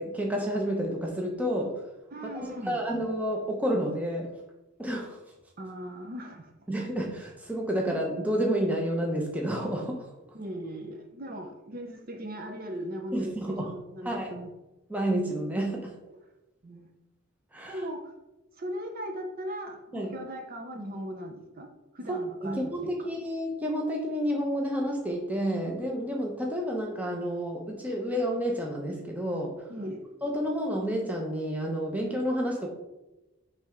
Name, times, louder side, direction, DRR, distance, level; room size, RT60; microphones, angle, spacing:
voice 1, 0.0-1.8 2.2-4.3 4.8-5.2 6.7-10.1 13.1-13.7 14.0-14.3 14.9-16.0 17.5-17.8 19.9-20.1 22.1-29.6 30.2-32.7, equal, 5° right, 0 dB, 0.8 m, -30 dB
voice 2, 2.1-2.8 5.6-6.5 10.3-14.5 16.6-16.9 17.7-18.1 18.6-22.9 29.7-30.0, equal, 40° right, 4 dB, 0.6 m, -38 dB
6.7 x 3.4 x 4.9 m, 1.0 s
head